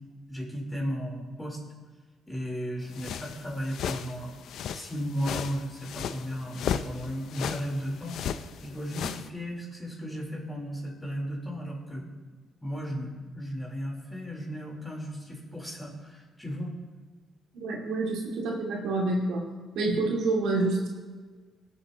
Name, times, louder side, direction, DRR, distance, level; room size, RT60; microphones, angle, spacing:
voice 1, 0.3-1.6 2.3-4.3 4.7-8.2 8.6-12.1 12.6-16.7, equal, 10° left, -2 dB, 3.9 m, -35 dB
sound 1, 2.9-9.3, left 8 dB, 75° left, 0.5 m, -36 dB
voice 2, 17.6-19.4 19.7-20.9, right 2 dB, 85° right, -2 dB, 2.5 m, -27 dB
19.5 x 7.9 x 3.0 m, 1.4 s
cardioid pair, 90°, 0 cm